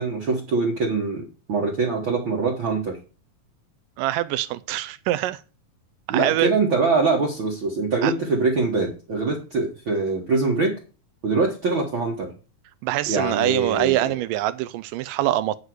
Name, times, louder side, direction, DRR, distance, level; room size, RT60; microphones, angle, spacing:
voice 1, 0.0-3.0 6.1-10.8 11.2-12.3 13.1-14.0, right 3 dB, 45° right, 1.8 m, -23 dB
voice 2, 4.0-5.4 6.1-6.5 8.0-8.1 12.8-15.6, right 15 dB, 80° right, 2.0 m, -24 dB
8.5 x 6.6 x 6.3 m
omnidirectional pair, 4.1 m